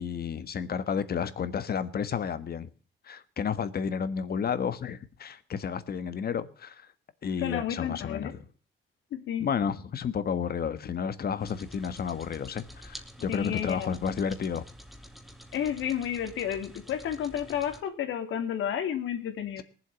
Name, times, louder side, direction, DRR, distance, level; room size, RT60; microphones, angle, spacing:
voice 1, 0.0-2.7 3.1-6.8 7.2-8.3 9.4-14.6, left 7 dB, 50° left, 1.4 m, -31 dB
voice 2, 7.4-8.3 9.1-9.5 13.3-13.9 15.5-19.6, left 9 dB, 80° left, 2.6 m, -31 dB
sound 1, 11.4-17.8, equal, ahead, 2.4 m, -48 dB
19.5 x 7.7 x 7.0 m
cardioid pair, 90°, 20 cm